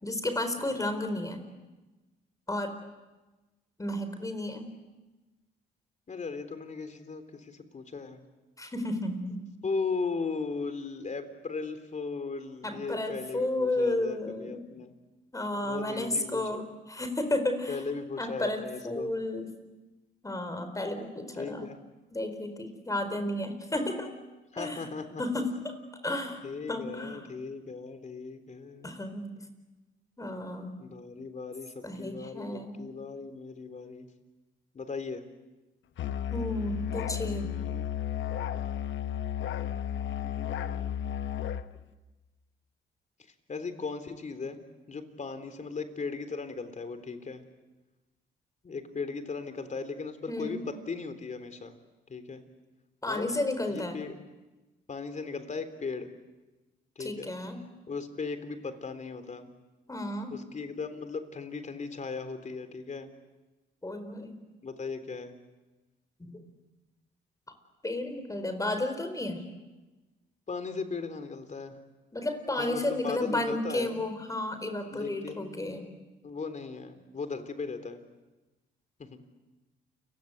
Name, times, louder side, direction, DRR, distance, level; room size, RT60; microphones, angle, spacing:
voice 1, 0.0-1.5 2.5-2.8 3.8-4.7 8.6-9.4 12.6-14.6 15.3-17.7 18.2-19.5 20.2-21.7 22.1-24.1 24.6-24.9 25.2-25.7 26.0-26.4 26.7-27.3 28.8-29.3 30.2-30.7 31.8-33.0 36.3-37.5 50.3-50.6 53.0-54.0 57.0-57.6 59.9-60.4 63.8-64.4 66.2-66.4 67.8-69.4 72.1-75.9, left 1 dB, 15° left, 8 dB, 4.4 m, -32 dB
voice 2, 6.1-8.2 9.6-14.9 15.6-16.6 17.7-19.1 21.3-21.8 24.5-25.2 26.4-29.0 30.8-34.1 34.7-35.3 37.1-37.9 40.2-41.0 43.2-44.6 44.9-47.4 48.6-51.8 52.1-52.4 53.1-53.3 53.7-54.1 54.9-56.1 57.0-57.3 57.9-59.5 60.3-63.1 64.6-65.4 70.5-71.8 72.6-74.1 74.9-75.9 76.2-78.0 79.0-79.2, left 4 dB, 40° left, 9 dB, 3.6 m, -37 dB
Musical instrument, 36.0-41.7, left 10 dB, 70° left, 1.2 m, -33 dB
29.5 x 24.0 x 8.1 m, 1.1 s
cardioid pair, 90°, 20 cm